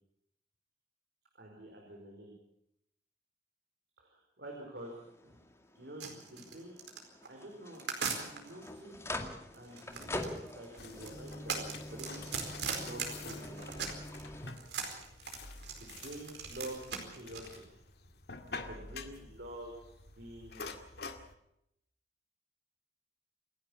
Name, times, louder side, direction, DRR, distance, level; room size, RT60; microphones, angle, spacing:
voice 1, 1.3-2.3 4.0-5.4 5.7-6.8 7.3-9.0 9.5-12.3 12.8-13.9 15.8-17.8 18.5-20.7, right 1 dB, 65° right, 0 dB, 4.9 m, -48 dB
sound 1, 4.8-14.5, left 1 dB, 15° left, 2.2 m, -45 dB
sound 2, 6.0-8.7 9.5-14.2 14.5-17.6, right 6 dB, 80° right, 4.6 m, -39 dB
sound 3, 10.8-21.3, left 3 dB, 65° left, 2.1 m, -48 dB
28.0 x 11.5 x 8.6 m, 0.78 s
head